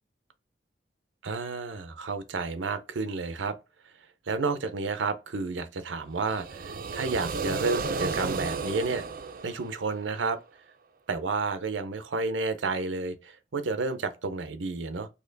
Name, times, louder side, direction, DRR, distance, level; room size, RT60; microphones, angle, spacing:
voice 1, 1.2-3.6 4.3-9.1 9.4-10.4 11.1-15.1, right 3 dB, 90° right, 0.6 m, -31 dB
sound 1, 6.2-10.2, right 4 dB, 50° right, 0.4 m, -33 dB
4.3 x 2.9 x 3.9 m
head